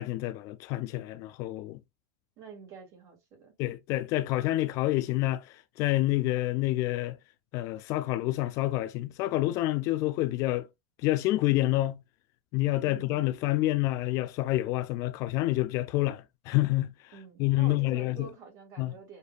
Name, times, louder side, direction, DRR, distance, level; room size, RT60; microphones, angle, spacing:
voice 1, 0.0-1.8 3.6-7.2 7.5-10.7 11.0-12.0 12.5-16.9 17.4-18.3 18.8-18.9, left 17 dB, 40° left, 0.3 m, -28 dB
voice 2, 2.4-3.5 12.8-13.3 17.1-19.2, right 6 dB, 35° right, 1.9 m, -48 dB
6.5 x 2.7 x 2.3 m
supercardioid pair, 160°, 9 cm